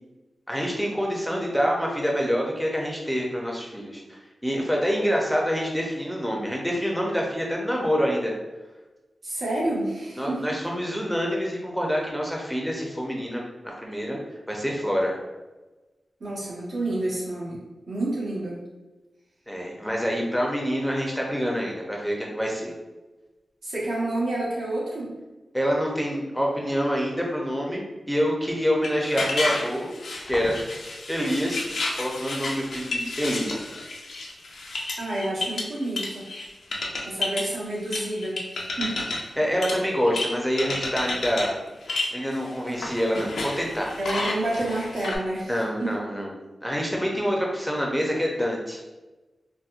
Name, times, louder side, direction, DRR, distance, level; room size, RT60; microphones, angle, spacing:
voice 1, 0.5-8.3 10.2-14.2 14.5-15.1 19.5-22.7 25.5-27.8 28.1-29.9 30.3-30.5 31.1-31.7 32.0-33.5 39.4-41.6 42.1-43.9 45.5-46.3 46.6-48.8, equal, ahead, -2 dB, 0.5 m, -26 dB
voice 2, 9.2-10.6 16.2-18.6 23.6-25.1 35.0-36.2 37.0-39.1 44.0-46.0, right 1 dB, 75° right, -7 dB, 1.3 m, -29 dB
sound 1, 28.8-36.5 36.7-37.5 37.9-39.4 39.6-40.3 40.6-41.5 41.8-45.2, left 2 dB, 85° left, 0.5 m, -31 dB
4.1 x 2.1 x 2.5 m, 1.1 s
cardioid pair, 70°, 0 cm